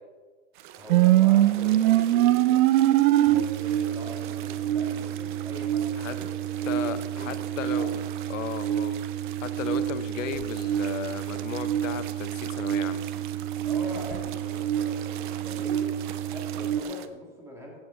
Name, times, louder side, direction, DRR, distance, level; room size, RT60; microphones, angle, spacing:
sound 1, 0.5-17.1, right 11 dB, 40° right, 0.6 m, -43 dB
voice 1, 0.8-2.4 3.3-8.0 13.6-17.8, left 1 dB, 5° right, -2 dB, 2.1 m, -42 dB
sound 2, 0.9-16.8, right 13 dB, 85° right, 0.7 m, -25 dB
voice 2, 6.7-7.9 8.3-9.0 9.4-13.1, left 9 dB, 70° left, 12 dB, 1.0 m, -35 dB
16.0 x 7.9 x 3.9 m, 1.5 s
supercardioid pair, 155°, 40 cm